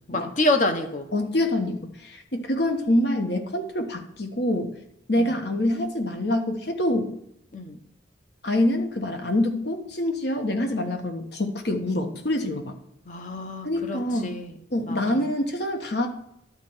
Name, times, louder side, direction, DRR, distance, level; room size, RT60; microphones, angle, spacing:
voice 1, 0.1-1.1 5.2-5.3 7.5-7.8 13.0-14.5 14.9-15.0, left 2 dB, 40° left, 7 dB, 1.0 m, -27 dB
voice 2, 1.1-4.7 5.1-7.1 8.4-12.7 13.6-14.4 14.7-16.1, left 1 dB, 60° left, 4 dB, 1.3 m, -26 dB
11.5 x 4.4 x 7.9 m, 0.80 s
head